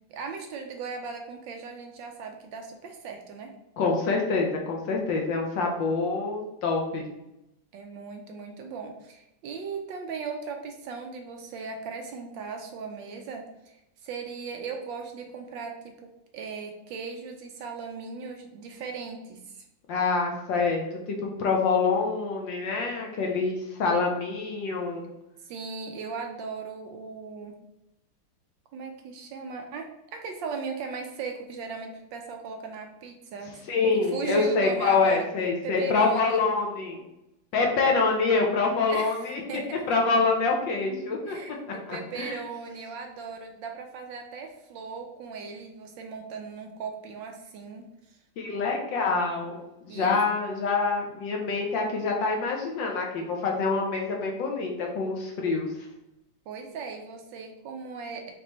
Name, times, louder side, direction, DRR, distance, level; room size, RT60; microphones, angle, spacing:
voice 1, 0.1-3.5 7.7-13.8 14.0-19.6 25.4-27.6 28.7-33.6 34.0-35.3 35.6-36.4 38.8-39.8 41.3-48.2 49.9-50.2 56.5-58.3, right 5 dB, 75° right, 3 dB, 1.1 m, -38 dB
voice 2, 3.8-7.1 19.9-25.0 33.7-37.0 37.5-39.6 39.9-41.4 41.9-42.4 48.4-49.6 49.8-55.7, left 4 dB, 70° left, 1 dB, 1.3 m, -26 dB
5.2 x 3.0 x 3.0 m, 0.88 s
omnidirectional pair, 2.3 m